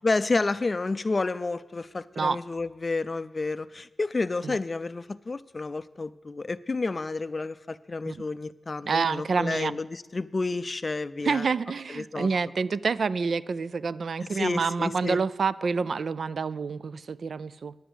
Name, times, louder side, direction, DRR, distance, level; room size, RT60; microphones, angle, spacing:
voice 1, 0.0-11.5 12.0-12.3 14.3-15.2, left 3 dB, 35° left, 15 dB, 0.4 m, -30 dB
voice 2, 8.8-9.8 11.2-17.8, right 5 dB, 65° right, 16 dB, 0.3 m, -28 dB
10.0 x 8.1 x 7.8 m, 1.1 s
wide cardioid pair, 105°, 0 cm